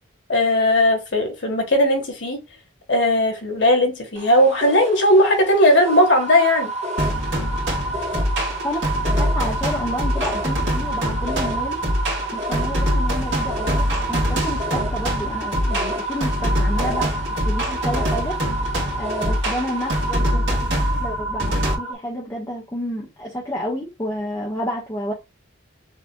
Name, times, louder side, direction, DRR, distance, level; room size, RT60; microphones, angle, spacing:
voice 1, 0.3-2.4 2.9-6.7, left 1 dB, 60° left, 1.6 m, -17 dB
sound 1, 4.1-20.1, equal, 30° right, 1.0 m, -35 dB
sound 2, 5.8-21.9, right 3 dB, 10° right, 1.2 m, -30 dB
sound 3, 7.0-21.7, equal, 65° right, 2.4 m, -24 dB
voice 2, 9.2-11.8 12.3-17.1 17.4-18.4 19.0-25.1, equal, 15° left, 1.2 m, -30 dB
6.8 x 3.2 x 2.3 m
head